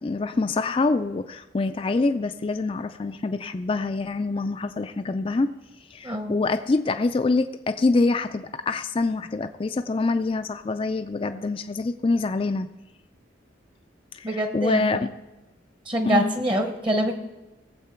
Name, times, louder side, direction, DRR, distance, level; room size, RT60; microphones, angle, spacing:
voice 1, 0.0-5.5 5.9-12.7 14.1-14.3 14.5-15.1 16.1-16.4, left 3 dB, 30° left, 8 dB, 0.3 m, -25 dB
voice 2, 6.0-6.4 14.2-15.1 15.9-17.1, right 1 dB, 25° right, 6 dB, 0.9 m, -25 dB
19.5 x 7.6 x 4.4 m, 1.0 s
head